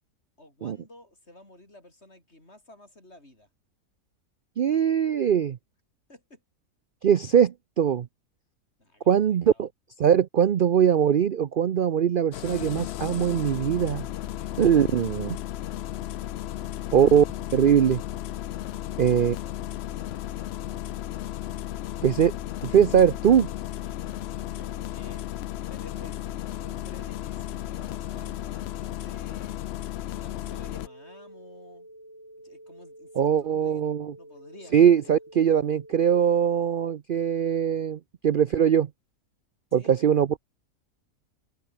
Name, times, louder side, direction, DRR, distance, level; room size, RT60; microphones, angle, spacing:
voice 1, 0.4-3.5 6.1-6.4 8.8-9.7 14.4-14.5 18.8-19.6 19.9-20.5 23.8-25.4 25.7-29.6 30.1-31.9 32.4-35.2 39.7-40.0, left 1 dB, 40° left, 7.9 m, -52 dB
voice 2, 4.6-5.6 7.0-8.1 9.1-9.7 10.0-14.0 14.6-15.4 16.9-17.2 17.5-18.0 19.0-19.4 22.0-22.3 22.6-23.5 33.2-34.1 34.7-38.9 39.7-40.4, right 8 dB, 75° right, 0.4 m, -21 dB
Engine starting, 12.3-30.9, left 12 dB, 80° left, 0.5 m, -34 dB
sound 1, 30.5-36.1, right 1 dB, 10° right, 3.4 m, -49 dB
omnidirectional pair, 1.7 m